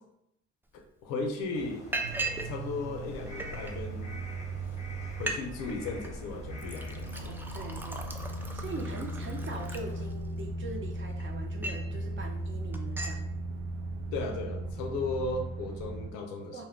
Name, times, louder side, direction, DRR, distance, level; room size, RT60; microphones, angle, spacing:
voice 1, 0.7-1.9 2.4-4.2 5.2-7.5 14.1-16.6, left 3 dB, 90° left, 3 dB, 0.5 m, -36 dB
Liquid, 0.8-0.9 1.2-1.4 1.9-2.5 2.8-3.7 4.4-4.5 4.8-4.9 5.1-5.4 5.7-6.1 6.6-10.4 10.9-11.9 12.3-12.5 12.7-13.2, right 2 dB, 5° right, 0.3 m, -38 dB
sound 1, 1.5-10.1, left 2 dB, 20° left, 0.7 m, -48 dB
sound 2, 2.0-16.1, right 2 dB, 75° right, 0.5 m, -38 dB
voice 2, 7.1-8.1 8.5-13.2 16.5-16.6, right 3 dB, 35° right, 1 dB, 0.7 m, -42 dB
2.3 x 2.1 x 3.4 m, 0.82 s
supercardioid pair, 55°, 33 cm